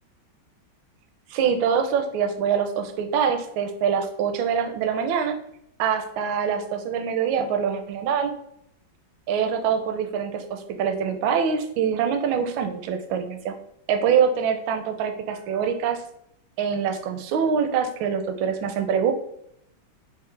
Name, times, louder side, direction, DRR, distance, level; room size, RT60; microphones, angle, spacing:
voice 1, 1.3-5.4 5.8-8.3 9.3-13.5 13.9-16.0 16.6-19.1, right 7 dB, 80° right, 6 dB, 1.3 m, -24 dB
5.4 x 2.0 x 3.1 m, 0.74 s
omnidirectional pair, 2.1 m